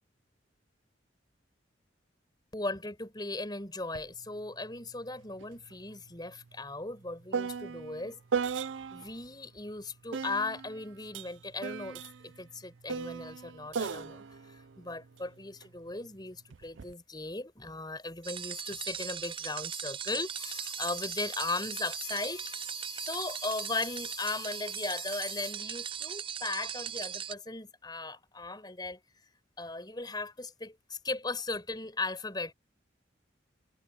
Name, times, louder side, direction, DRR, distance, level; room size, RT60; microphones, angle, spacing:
voice 1, 2.5-8.4 8.9-29.2 29.6-32.5, left 3 dB, 20° left, 5.1 m, -37 dB
sound 1, 4.0-4.1 4.4-9.2 10.1-15.7 16.5-16.9, right 6 dB, 75° right, 0.5 m, -38 dB
sound 2, 18.2-27.3, right 9 dB, 25° right, 0.4 m, -39 dB
head